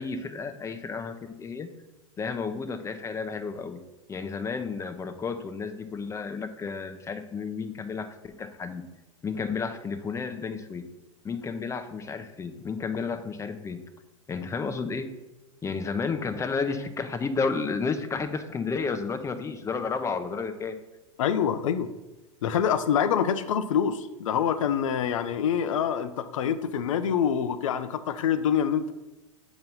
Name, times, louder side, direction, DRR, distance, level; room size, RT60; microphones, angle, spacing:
voice 1, 0.0-1.7 2.2-3.8 4.1-8.8 9.2-10.8 11.2-13.8 14.3-15.1 15.6-20.8, left 5 dB, 15° left, 8 dB, 0.6 m, -32 dB
voice 2, 21.2-21.9 22.4-28.9, left 8 dB, 75° left, 12 dB, 0.6 m, -26 dB
7.5 x 3.0 x 5.5 m, 1.0 s
hypercardioid pair, 100°, 17 cm